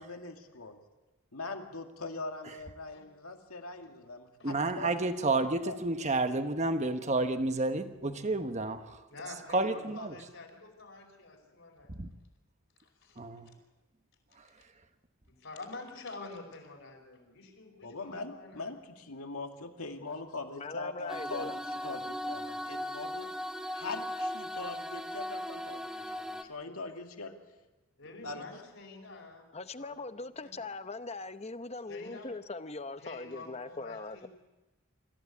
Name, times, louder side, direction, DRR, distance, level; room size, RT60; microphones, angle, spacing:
voice 1, 0.0-0.8 1.3-5.1 5.6-5.8 17.8-21.5 21.8-23.3 23.7-27.3 28.2-28.4, left 3 dB, 80° left, 4 dB, 2.2 m, -42 dB
voice 2, 4.4-9.0 9.5-10.2 11.9-12.1 13.2-13.5, right 2 dB, 30° right, 8 dB, 1.2 m, -30 dB
voice 3, 9.1-12.1 12.8-13.2 13.5-13.6 15.4-18.7 22.5-22.7 28.0-30.6 31.9-32.3 33.0-34.3, left 3 dB, 60° left, 2 dB, 5.1 m, -48 dB
voice 4, 20.5-21.6 29.5-34.3, left 3 dB, 30° left, 11 dB, 0.7 m, -41 dB
sound 1, 21.1-26.4, equal, 5° right, 1.4 m, -38 dB
25.5 x 15.0 x 8.4 m, 1.1 s
head